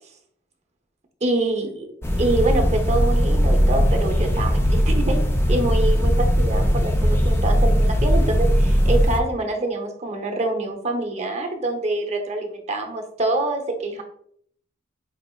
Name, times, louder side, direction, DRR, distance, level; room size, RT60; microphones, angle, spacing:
voice 1, 1.2-1.9 2.2-5.2 5.5-14.0, right 2 dB, 35° right, 4 dB, 0.6 m, -25 dB
sound 1, 2.0-9.2, equal, 15° left, 0.4 m, -19 dB
5.0 x 3.3 x 2.2 m, 0.66 s
head